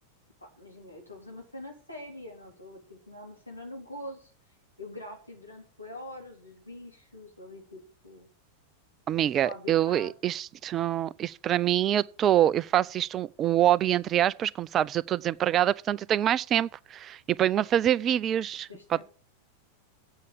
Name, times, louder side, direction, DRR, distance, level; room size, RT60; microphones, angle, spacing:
voice 1, 0.4-4.3 4.8-8.3 9.3-10.1 18.7-19.0, left 1 dB, 85° left, 3.3 m, -44 dB
voice 2, 9.1-18.7, right 11 dB, 30° right, 0.4 m, -25 dB
8.3 x 6.9 x 8.1 m
figure-of-eight pair, 90°, 0 cm